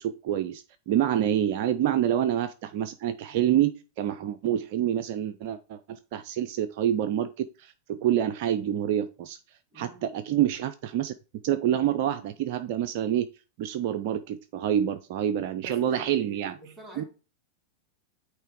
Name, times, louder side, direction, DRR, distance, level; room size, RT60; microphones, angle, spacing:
voice 1, 0.0-9.4 9.7-11.1 11.4-13.3 13.6-16.5 17.0-17.1, right 11 dB, 45° right, 0.5 m, -27 dB
voice 2, 9.7-10.1 15.6-17.0, right 1 dB, 5° right, 1.9 m, -47 dB
8.9 x 3.3 x 4.7 m
figure-of-eight pair, 90°, 0 cm